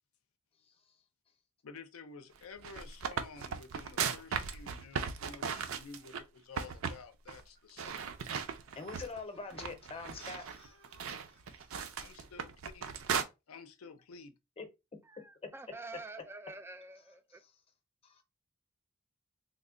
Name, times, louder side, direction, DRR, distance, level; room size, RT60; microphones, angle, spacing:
voice 1, 1.6-8.1 12.0-13.1 13.5-14.3, left 5 dB, 85° left, 0.5 m, -52 dB
sound 1, 2.4-6.2 6.6-7.0 7.3-7.4 7.8-9.2 9.6-13.2, right 6 dB, 70° right, 0.5 m, -37 dB
sound 2, 8.6-11.7 12.2-12.3, right 2 dB, 85° right, 1.1 m, -61 dB
voice 2, 8.8-10.8 11.3-11.6 14.6-14.7 15.4-15.5 17.3-17.5 18.0-18.2, left 4 dB, 30° left, 0.6 m, -44 dB
voice 3, 15.1-17.4, right 2 dB, 10° right, 0.3 m, -47 dB
3.1 x 2.1 x 3.7 m
head